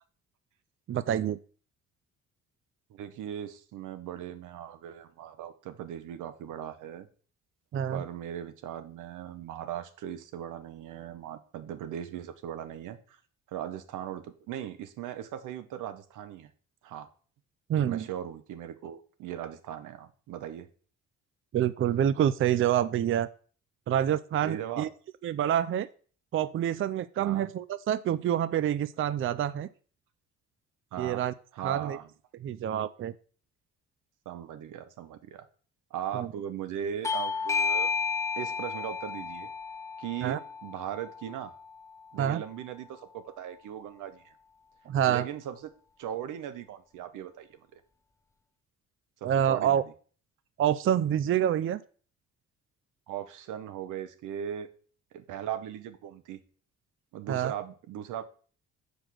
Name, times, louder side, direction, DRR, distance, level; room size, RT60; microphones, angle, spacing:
voice 1, 0.9-1.4 7.7-8.0 17.7-18.1 21.5-23.3 23.9-24.9 25.2-25.9 26.3-29.7 31.0-31.3 31.6-32.0 32.4-33.1 36.1-36.3 40.2-40.4 42.2-42.4 44.9-45.3 49.2-49.8 50.6-51.8 57.3-57.5, right 10 dB, 45° right, 16 dB, 0.4 m, -27 dB
voice 2, 2.9-7.1 7.9-13.2 13.5-16.5 16.8-17.1 17.8-20.7 24.4-24.9 27.2-27.5 30.9-31.3 31.5-32.1 34.3-35.4 35.9-37.9 38.4-39.5 40.0-41.5 42.1-44.3 45.1-45.7 46.0-47.8 49.2-49.9 53.1-54.7 55.1-56.4 57.1-58.2, right 10 dB, 85° right, 11 dB, 0.9 m, -39 dB
Bell / Doorbell, 37.0-42.2, left 5 dB, 10° left, 0.5 m, -33 dB
6.0 x 5.2 x 6.2 m, 0.43 s
cardioid pair, 90°, 30 cm